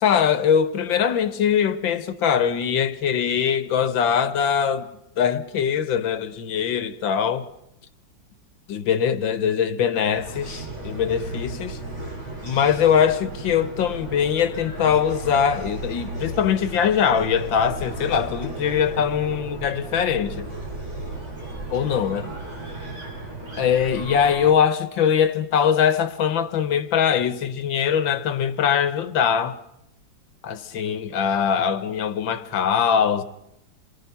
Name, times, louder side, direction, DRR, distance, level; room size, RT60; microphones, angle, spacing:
voice 1, 0.0-4.9 5.2-7.5 8.7-11.8 12.4-20.5 21.7-22.2 23.6-29.6 30.4-33.2, left 8 dB, 85° left, 1.9 m, -22 dB
sound 1, 10.1-24.5, right 2 dB, 35° right, 5.8 m, -35 dB
28.0 x 22.5 x 5.8 m
omnidirectional pair, 2.1 m